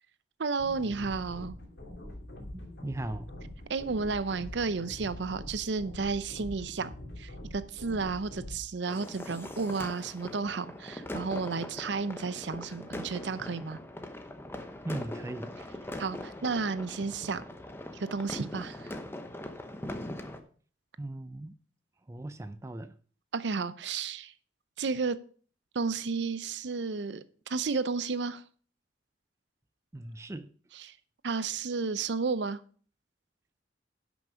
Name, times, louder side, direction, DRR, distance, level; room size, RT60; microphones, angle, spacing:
voice 1, 0.4-1.6 3.7-13.8 16.0-17.4 17.9-18.9 23.3-24.3 24.8-25.2 25.7-28.4 30.7-30.9 31.2-32.6, right 4 dB, 65° right, 0.6 m, -32 dB
sound 1, 0.6-8.6, left 1 dB, 60° left, 2.7 m, -44 dB
voice 2, 2.5-3.3 14.8-15.5 21.0-21.6 22.1-23.0 29.9-30.5, right 1 dB, 15° right, 0.4 m, -38 dB
sound 2, 8.9-20.4, left 1 dB, 10° left, 0.8 m, -41 dB
10.5 x 6.1 x 5.0 m
head